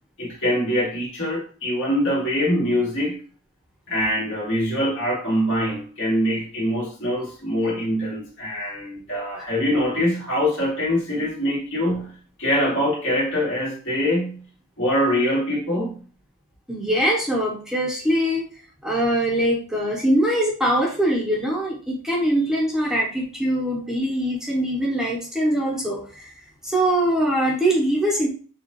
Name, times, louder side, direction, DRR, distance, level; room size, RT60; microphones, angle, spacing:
voice 1, 0.2-3.2 3.9-12.1 12.4-14.4 14.8-16.0, equal, 55° left, 2.4 m, -23 dB
voice 2, 16.7-18.5 18.8-26.3 26.6-28.3, right 1 dB, ahead, 0.8 m, -22 dB
6.6 x 2.4 x 3.1 m
head